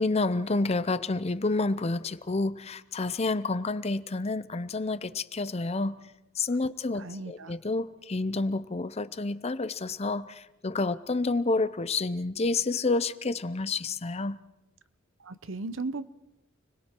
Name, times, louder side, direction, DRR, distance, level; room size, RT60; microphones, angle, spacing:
voice 1, 0.0-5.9 6.4-14.4, left 3 dB, 30° left, 14 dB, 0.6 m, -29 dB
voice 2, 7.0-7.6 15.2-16.1, right 3 dB, 70° right, 13 dB, 0.9 m, -36 dB
30.0 x 21.0 x 4.5 m, 0.99 s
head